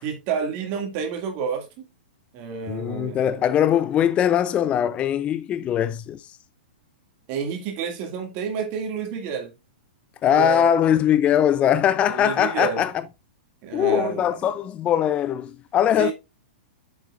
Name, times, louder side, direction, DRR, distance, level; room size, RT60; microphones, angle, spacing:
voice 1, 0.0-1.9 2.3-3.2 7.3-9.5 10.3-10.8 12.1-12.8 13.6-14.4 16.0-16.1, right 7 dB, 40° right, 2.0 m, -29 dB
voice 2, 2.7-6.2 10.2-12.9 13.7-16.1, left 10 dB, 25° left, 0.4 m, -21 dB
7.7 x 7.4 x 2.4 m
hypercardioid pair, 125°, 5 cm